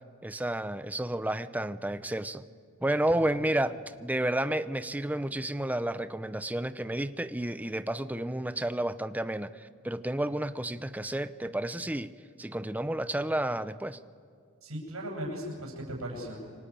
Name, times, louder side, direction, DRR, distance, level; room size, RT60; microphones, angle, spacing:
voice 1, 0.2-2.4 2.8-12.1 12.4-14.0, right 1 dB, 10° right, 12 dB, 0.7 m, -31 dB
voice 2, 14.6-16.4, equal, 85° right, -1 dB, 7.8 m, -38 dB
27.5 x 24.5 x 8.8 m, 2.2 s
head